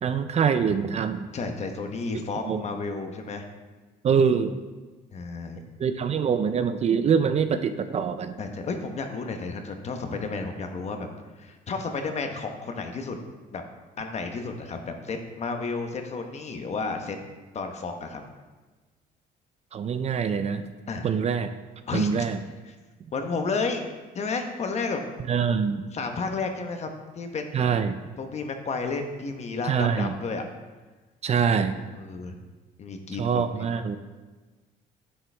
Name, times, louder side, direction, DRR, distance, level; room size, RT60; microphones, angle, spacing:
voice 1, 0.0-1.3 2.5-2.6 4.0-4.6 5.8-8.4 19.7-20.7 21.0-21.5 21.9-22.4 25.3-25.9 27.5-28.0 29.7-30.1 31.2-31.8 33.2-34.0, right 6 dB, 40° right, 9 dB, 0.5 m, -24 dB
voice 2, 1.3-3.5 5.1-5.6 8.4-11.1 11.4-13.2 13.5-13.6 14.0-17.2 17.5-18.2 20.9-21.1 21.9-22.1 22.6-22.7 23.1-23.9 24.1-25.0 25.9-27.6 28.2-30.4 31.9-32.4 32.8-33.6, left 4 dB, 40° left, 5 dB, 1.1 m, -32 dB
10.0 x 7.5 x 3.5 m, 1.3 s
cardioid pair, 110°, 17 cm